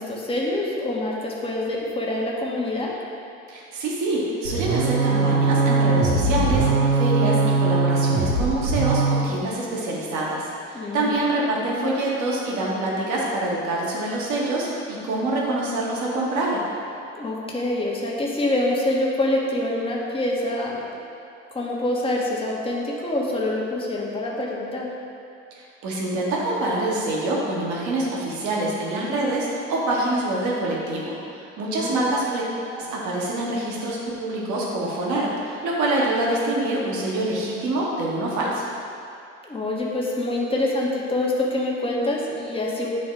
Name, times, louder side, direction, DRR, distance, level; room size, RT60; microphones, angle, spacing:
voice 1, 0.0-2.9 10.7-11.2 17.1-21.0 21.5-24.9 31.7-32.0 39.4-42.9, left 1 dB, 15° left, -3 dB, 1.2 m, -26 dB
voice 2, 3.5-16.6 25.5-32.4 32.7-38.7, right 2 dB, 50° right, -4 dB, 1.5 m, -25 dB
sound 1, 4.4-9.3, right 3 dB, 80° right, 0.7 m, -21 dB
9.2 x 4.1 x 3.7 m, 2.6 s
figure-of-eight pair, 55°, 37 cm